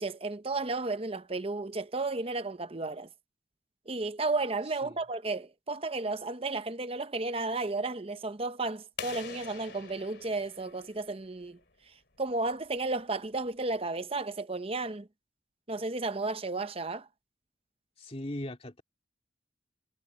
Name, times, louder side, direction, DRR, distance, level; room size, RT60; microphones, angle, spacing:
voice 1, 0.0-3.1 3.9-11.6 12.2-15.1 15.7-17.1, right 3 dB, 30° right, 0.8 m, -33 dB
sound 1, 9.0-11.6, left 6 dB, 60° left, 3.6 m, -45 dB
voice 2, 18.0-18.8, left 1 dB, 30° left, 2.3 m, -39 dB
head